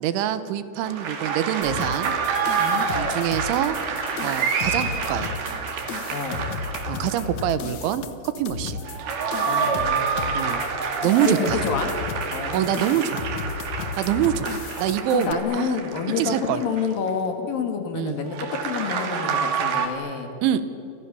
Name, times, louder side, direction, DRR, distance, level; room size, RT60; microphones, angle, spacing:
voice 1, 0.0-2.1 3.0-3.8 4.2-5.3 6.9-8.8 10.4-10.6 11.0-11.6 12.5-13.3 14.0-15.8 16.2-16.6 17.9-18.2 20.4-20.6, right 11 dB, 80° right, 12 dB, 3.4 m, -25 dB
sound 1, 0.9-7.4 8.7-17.1 18.3-19.9, right 6 dB, 60° right, 4.1 m, -28 dB
sound 2, 1.6-15.3, left 5 dB, 80° left, 1.6 m, -34 dB
voice 2, 2.5-2.9 6.1-6.5 9.4-10.5 11.2-11.9 12.3-13.0 15.1-20.3, left 6 dB, 55° left, 5 dB, 3.3 m, -28 dB
sound 3, 3.8-4.3 5.3-5.4 6.1-6.4, left 1 dB, 15° left, 3.3 m, -43 dB
29.5 x 28.5 x 6.9 m, 3.0 s
omnidirectional pair, 5.5 m